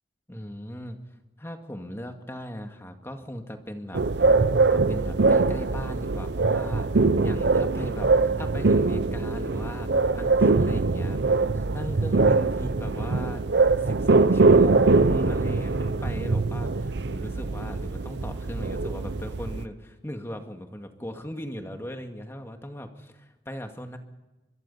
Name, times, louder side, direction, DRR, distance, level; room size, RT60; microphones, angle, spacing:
voice 1, 0.3-1.0 1.4-4.3 4.7-6.9 7.2-13.4 13.8-24.0, equal, 15° left, 5 dB, 2.1 m, -38 dB
sound 1, 3.9-19.6, right 3 dB, 75° right, 0.7 m, -22 dB
26.0 x 22.0 x 5.6 m, 1.1 s
head